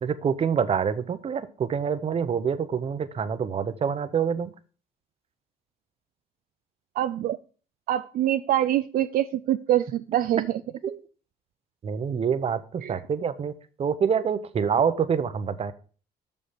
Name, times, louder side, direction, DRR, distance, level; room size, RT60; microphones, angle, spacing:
voice 1, 0.0-4.5 10.8-11.0 11.8-13.5 13.8-15.7, right 7 dB, 35° right, 12 dB, 0.8 m, -26 dB
voice 2, 7.0-7.4 7.9-10.6 12.8-13.0, right 12 dB, 60° right, 9 dB, 0.4 m, -25 dB
6.7 x 5.3 x 5.7 m, 0.39 s
cardioid pair, 110°, 17 cm